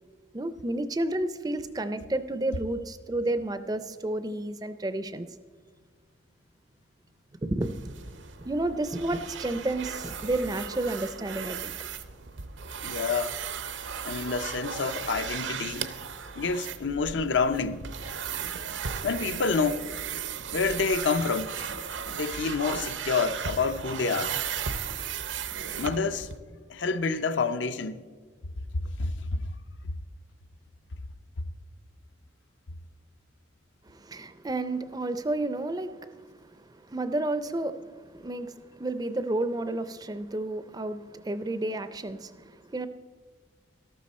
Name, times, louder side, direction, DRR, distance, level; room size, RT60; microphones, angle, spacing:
voice 1, 0.3-5.3 7.4-7.8 8.4-11.7 33.8-42.9, right 2 dB, 20° right, 0.4 m, -31 dB
sound 1, 7.6-26.4, right 7 dB, 75° right, 0.7 m, -36 dB
voice 2, 12.8-13.4 14.0-15.9 16.4-17.8 19.0-19.9 20.5-21.5 22.1-24.4 25.8-26.3 26.7-28.0 29.0-29.4, left 4 dB, 70° left, 0.6 m, -28 dB
13.0 x 12.5 x 4.2 m
head